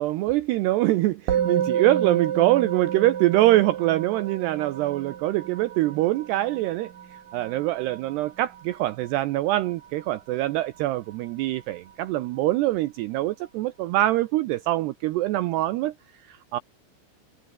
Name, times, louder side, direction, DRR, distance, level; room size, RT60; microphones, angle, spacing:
voice 1, 0.0-6.9 7.3-15.9 16.3-16.6, right 16 dB, 85° right, 2.4 m, -24 dB
Musical instrument, 1.3-10.8, right 9 dB, 50° right, 3.2 m, -31 dB
omnidirectional pair, 5.8 m